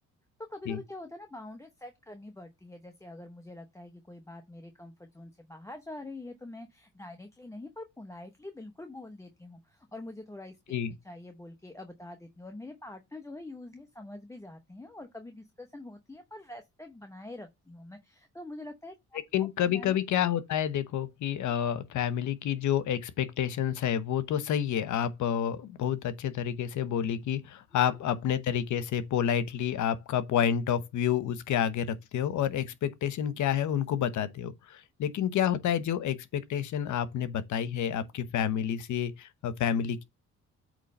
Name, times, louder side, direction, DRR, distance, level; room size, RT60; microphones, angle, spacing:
voice 1, 0.5-10.8 11.0-20.0 27.7-28.0, left 2 dB, 10° left, 0.8 m, -45 dB
voice 2, 19.3-40.0, left 9 dB, 75° left, 1.0 m, -29 dB
8.3 x 3.2 x 5.3 m
cardioid pair, 90°, 30 cm